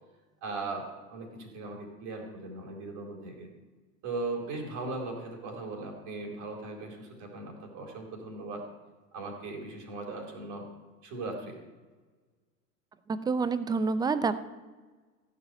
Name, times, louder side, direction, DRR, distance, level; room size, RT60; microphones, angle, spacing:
voice 1, 0.4-3.5 4.0-8.6 9.1-10.6 11.0-11.6, right 3 dB, 40° right, 0 dB, 4.4 m, -38 dB
voice 2, 13.1-14.4, right 4 dB, 10° right, 13 dB, 0.6 m, -28 dB
15.5 x 7.1 x 9.1 m, 1.3 s
figure-of-eight pair, 90°, 48 cm